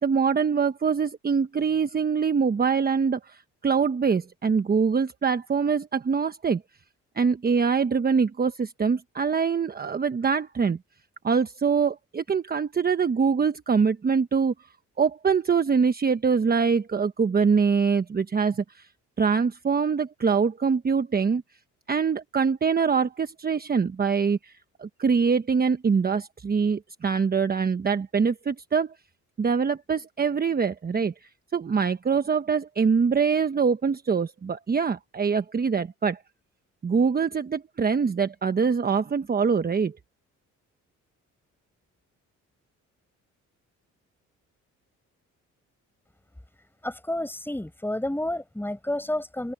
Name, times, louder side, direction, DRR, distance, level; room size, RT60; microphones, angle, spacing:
voice 1, 0.0-6.6 7.2-10.8 11.2-14.5 15.0-18.9 19.2-21.4 21.9-24.5 24.8-28.9 29.4-31.1 31.5-36.2 36.8-39.9, right 5 dB, 30° right, 1.1 m, -24 dB
voice 2, 46.8-49.5, left 1 dB, 5° left, 6.7 m, -30 dB
cardioid pair, 90°, 30 cm